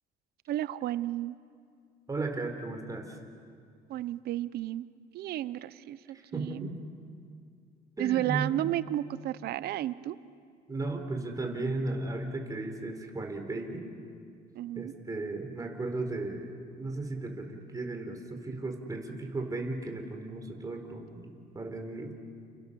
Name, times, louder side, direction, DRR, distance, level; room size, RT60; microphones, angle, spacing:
voice 1, 0.5-1.3 3.9-4.9 5.1-6.0 6.3-6.7 8.0-10.2 14.5-14.9, right 13 dB, 70° right, 16 dB, 0.8 m, -32 dB
voice 2, 2.1-3.2 6.1-6.7 8.0-8.5 10.7-13.8 14.7-22.1, right 2 dB, 20° right, 3 dB, 4.2 m, -35 dB
29.5 x 29.0 x 7.0 m, 2.3 s
cardioid pair, 110°, 17 cm